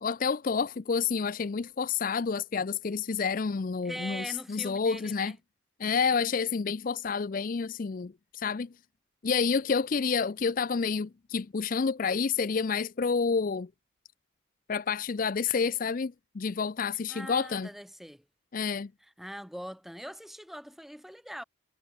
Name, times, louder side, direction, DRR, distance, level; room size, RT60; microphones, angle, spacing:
voice 1, 0.0-5.4 5.8-8.7 9.2-13.7 14.7-17.7 18.5-18.9, left 5 dB, 40° left, 0.4 m, -29 dB
voice 2, 3.8-5.3 17.1-18.2 19.2-21.4, equal, ahead, 1.8 m, -42 dB
head